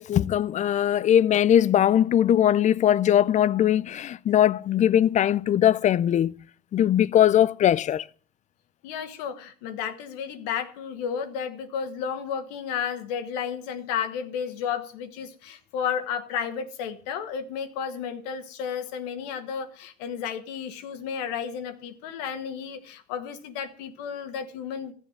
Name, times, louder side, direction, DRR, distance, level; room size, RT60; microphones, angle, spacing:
voice 1, 0.0-6.3 6.7-8.0, left 10 dB, 35° left, 0.5 m, -20 dB
voice 2, 8.8-24.9, left 7 dB, 80° left, 1.7 m, -32 dB
14.5 x 7.1 x 7.3 m
supercardioid pair, 95°, 20 cm